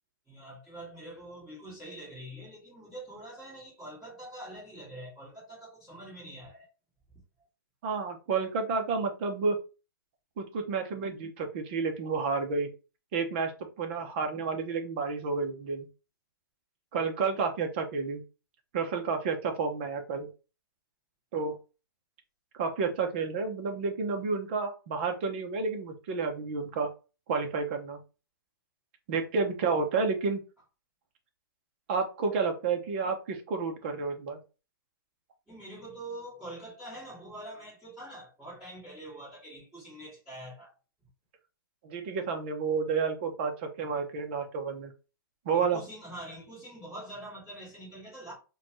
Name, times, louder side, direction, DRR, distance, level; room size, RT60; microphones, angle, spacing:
voice 1, 0.3-6.7 35.5-40.7 45.5-48.3, right 1 dB, 5° right, 2.1 m, -45 dB
voice 2, 7.8-9.6 10.4-12.7 13.1-15.9 16.9-18.2 18.7-20.3 21.3-21.5 22.6-26.9 27.3-28.0 29.1-30.4 31.9-34.4 41.8-44.9 45.4-45.8, right 4 dB, 30° right, 0.8 m, -30 dB
4.9 x 2.4 x 3.0 m
hypercardioid pair, 165°, 12 cm